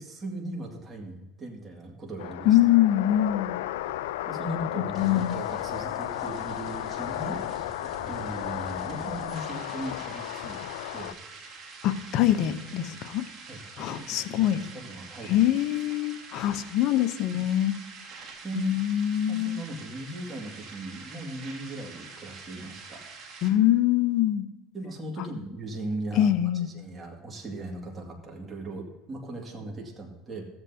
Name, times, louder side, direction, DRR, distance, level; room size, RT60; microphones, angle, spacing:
voice 1, 0.0-2.6 3.8-7.4 7.7-10.6 10.9-11.1 12.8-13.0 13.5-15.6 17.3-17.4 18.4-18.7 19.3-23.1 24.7-30.5, right 2 dB, 25° right, 0 dB, 2.2 m, -39 dB
sound 1, 2.2-11.1, left 14 dB, 80° left, 0.4 m, -34 dB
voice 2, 2.4-3.6 4.5-5.4 11.8-13.3 13.8-14.6 15.3-17.7 18.6-19.6 23.4-24.4 26.2-26.7, left 12 dB, 60° left, 11 dB, 0.8 m, -24 dB
sound 2, 3.8-23.5, right 4 dB, 45° right, 2.4 m, -46 dB
16.0 x 8.0 x 2.8 m, 1.2 s
supercardioid pair, 90°, 0 cm